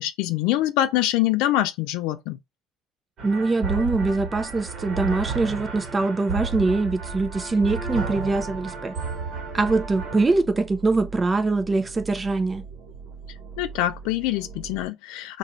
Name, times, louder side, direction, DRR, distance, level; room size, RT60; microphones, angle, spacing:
voice 1, 0.0-2.4 13.6-15.4, left 14 dB, 80° left, 0.3 m, -24 dB
voice 2, 3.2-8.9 9.5-12.6, right 3 dB, 20° right, 0.4 m, -23 dB
sound 1, 3.2-10.3, right 5 dB, 50° right, 1.2 m, -32 dB
sound 2, 7.1-14.9, right 5 dB, 75° right, 0.7 m, -42 dB
2.5 x 2.2 x 2.9 m
supercardioid pair, 95°, 0 cm